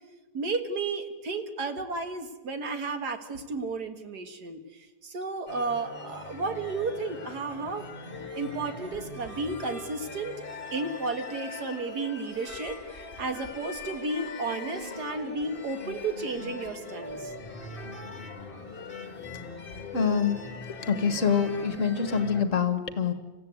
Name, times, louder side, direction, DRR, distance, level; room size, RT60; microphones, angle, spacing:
voice 1, 0.3-4.6 5.0-7.9 8.3-10.4 10.7-12.8 13.2-17.2, right 3 dB, 60° right, 7 dB, 2.2 m, -33 dB
sound 1, 5.5-22.4, left 3 dB, 30° left, 2.1 m, -41 dB
voice 2, 19.9-20.4 20.9-23.1, left 6 dB, 45° left, 10 dB, 1.8 m, -25 dB
26.5 x 15.0 x 9.5 m, 1.3 s
omnidirectional pair, 1.9 m